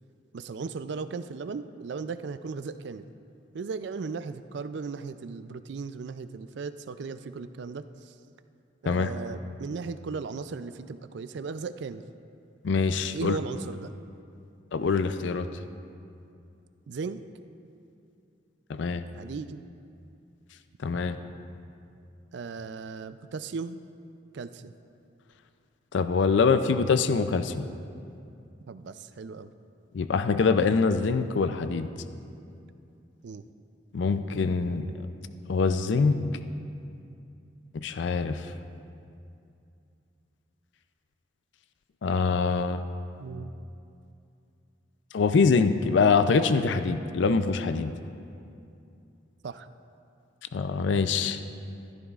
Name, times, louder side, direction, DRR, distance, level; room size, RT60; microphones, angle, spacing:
voice 1, 0.3-3.1 3.5-8.2 8.8-12.0 13.1-13.9 16.9-17.2 19.1-19.6 22.3-23.8 24.3-24.7 28.7-29.5 33.2-33.4 43.2-43.5 49.4-49.7, right 4 dB, 65° right, 12 dB, 0.4 m, -36 dB
voice 2, 12.6-13.4 14.7-15.5 18.7-19.0 20.8-21.2 25.9-27.6 29.9-31.9 33.9-34.9 35.5-36.2 37.8-38.4 42.0-42.8 45.1-47.9 50.5-51.4, left 4 dB, 70° left, 10 dB, 0.4 m, -24 dB
15.0 x 12.5 x 2.4 m, 2.6 s
head